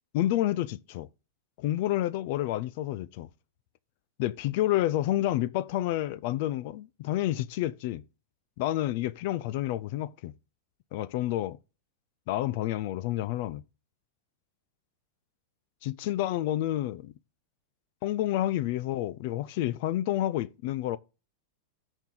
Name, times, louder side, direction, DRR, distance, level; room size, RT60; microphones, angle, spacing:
voice 1, 0.1-1.1 1.6-3.3 4.2-8.0 8.6-10.3 10.9-11.6 12.3-13.6 15.8-17.0 18.0-21.0, left 14 dB, 50° left, 0.4 m, -29 dB
13.5 x 4.5 x 3.8 m
supercardioid pair, 160°, 0 cm